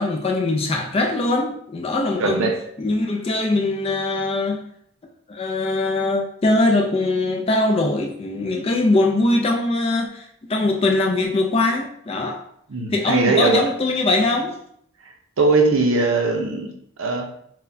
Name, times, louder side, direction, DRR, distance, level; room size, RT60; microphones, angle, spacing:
voice 1, 0.0-2.5 2.8-4.6 5.3-12.4 12.9-14.6, left 2 dB, 25° left, 3 dB, 0.3 m, -21 dB
voice 2, 2.2-2.5 12.7-13.6 15.4-16.7 17.0-17.2, right 3 dB, 60° right, 3 dB, 0.6 m, -19 dB
4.1 x 2.1 x 2.6 m, 0.68 s
head